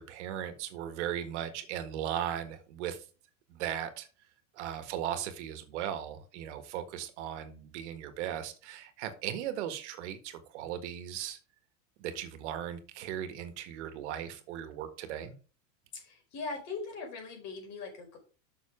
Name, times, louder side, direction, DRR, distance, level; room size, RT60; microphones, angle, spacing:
voice 1, 0.0-3.0 3.5-4.1 4.5-11.4 12.0-15.3, right 10 dB, 65° right, 9 dB, 1.6 m, -37 dB
voice 2, 15.9-18.2, left 4 dB, 45° left, 2 dB, 4.7 m, -40 dB
6.7 x 6.5 x 4.9 m, 0.36 s
supercardioid pair, 140°, 37 cm